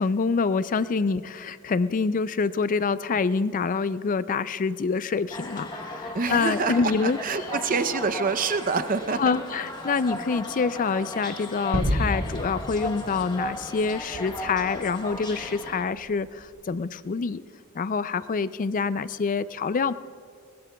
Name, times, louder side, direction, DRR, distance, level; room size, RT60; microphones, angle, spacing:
voice 1, 0.0-7.2 9.1-17.4 17.7-19.9, left 5 dB, 35° left, 15 dB, 0.4 m, -26 dB
sound 1, 5.3-15.8, left 1 dB, 20° left, 1.0 m, -36 dB
voice 2, 6.1-9.3 10.1-10.2, right 4 dB, 40° right, 10 dB, 0.6 m, -26 dB
Gunshot gunfire / Fireworks / Boom, 11.7-16.5, equal, 75° right, 1.5 m, -32 dB
22.0 x 19.5 x 2.3 m, 2.2 s
head